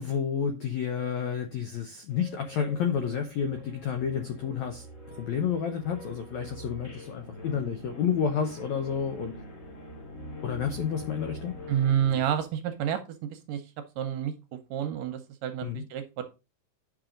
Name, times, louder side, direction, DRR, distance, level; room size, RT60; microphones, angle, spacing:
voice 1, 0.0-4.8 5.1-9.4 10.4-11.6 15.6-15.8, left 7 dB, 80° left, 6 dB, 1.6 m, -30 dB
sound 1, 2.1-12.2, left 1 dB, 10° left, 2.1 m, -44 dB
voice 2, 11.7-13.0 13.3-13.6 14.0-14.3 14.7-16.2, right 9 dB, 75° right, 7 dB, 2.1 m, -29 dB
8.8 x 6.0 x 3.8 m, 0.28 s
omnidirectional pair, 4.4 m